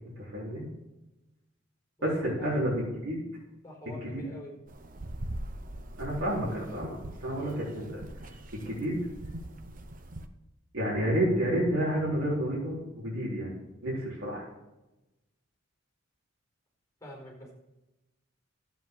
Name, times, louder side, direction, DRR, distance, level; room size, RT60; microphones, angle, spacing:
voice 1, 0.2-0.6 2.0-3.2 4.1-4.2 6.0-7.0 7.2-8.0 8.5-9.0 10.7-13.5 13.8-14.4, right 1 dB, 80° right, -7 dB, 4.0 m, -30 dB
voice 2, 2.0-2.5 3.6-4.6 17.0-17.5, left 1 dB, 15° left, -1 dB, 4.6 m, -45 dB
sound 1, 4.7-10.3, right 1 dB, 40° right, 0.8 m, -42 dB
12.0 x 9.0 x 4.7 m, 0.98 s
head